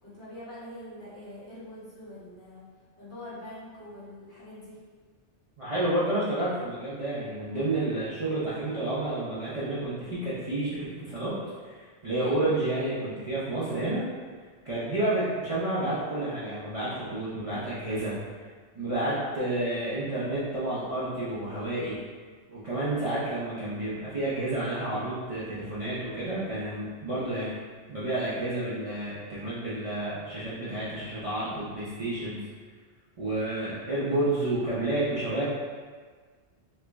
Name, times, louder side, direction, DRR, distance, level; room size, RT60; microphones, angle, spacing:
voice 1, 0.0-2.6 3.0-4.8 12.4-12.6, left 1 dB, 70° left, -11 dB, 1.6 m, -44 dB
voice 2, 5.6-11.3 11.6-14.0 14.6-18.1 18.7-22.0 22.5-27.6 27.9-32.4 33.2-35.4, right 1 dB, 40° right, -10 dB, 0.5 m, -30 dB
3.2 x 2.0 x 3.4 m, 1.5 s
omnidirectional pair, 1.2 m